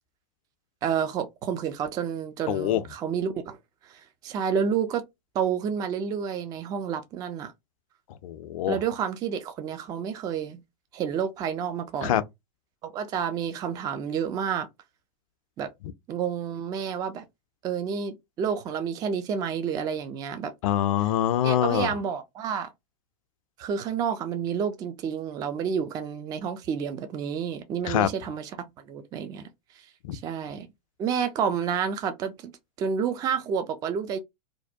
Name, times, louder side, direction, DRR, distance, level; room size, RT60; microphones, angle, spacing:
voice 1, 0.8-3.6 3.8-5.0 5.3-7.5 8.7-10.6 10.9-12.2 12.8-14.7 15.6-15.7 16.1-17.3 17.6-20.5 21.4-22.7 23.6-28.5 28.8-29.5 30.1-30.7 31.0-32.5 32.8-34.2, right 7 dB, 20° right, 0.3 m, -29 dB
voice 2, 2.5-2.8 8.2-8.8 12.0-12.2 20.6-21.9 27.9-28.1 30.1-30.2, left 12 dB, 55° left, 0.4 m, -24 dB
2.5 x 2.1 x 2.5 m
figure-of-eight pair, 95°, 21 cm